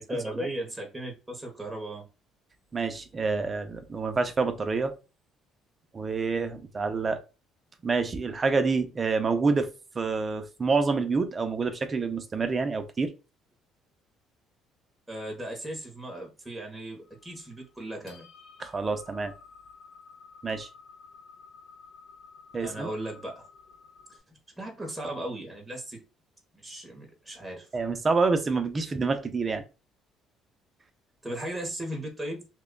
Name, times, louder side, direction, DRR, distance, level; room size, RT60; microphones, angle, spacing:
voice 1, 0.1-2.1 15.1-18.3 22.6-23.4 24.1-24.2 24.6-26.0 26.5-27.7 31.2-32.5, right 1 dB, 5° right, 0.8 m, -36 dB
voice 2, 2.7-4.9 5.9-7.2 7.8-9.7 9.9-13.1 18.6-19.3 20.4-20.7 22.5-22.9 27.7-29.6, right 4 dB, 25° right, 0.5 m, -27 dB
sound 1, 17.0-24.2, left 5 dB, 70° left, 1.1 m, -53 dB
2.9 x 2.2 x 3.6 m
cardioid pair, 140°, 0 cm